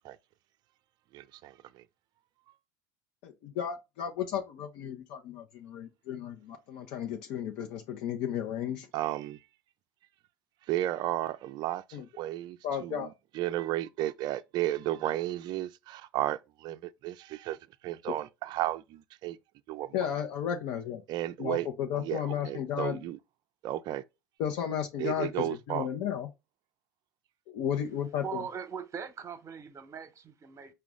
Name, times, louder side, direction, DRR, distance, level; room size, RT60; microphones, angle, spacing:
voice 1, 1.1-1.8 8.9-9.4 10.7-17.6 17.8-19.4 19.7-20.1 21.1-21.7 22.0-23.2 23.6-24.0 25.0-25.9, right 14 dB, 50° right, 0.3 m, -33 dB
voice 2, 3.2-8.9 11.9-12.0 12.6-13.1 19.9-21.0 21.4-23.0 24.4-26.3 27.5-28.2, left 9 dB, 60° left, 0.7 m, -34 dB
voice 3, 28.2-30.7, right 7 dB, 30° right, 0.9 m, -40 dB
4.8 x 2.2 x 3.6 m
hypercardioid pair, 75°, 10 cm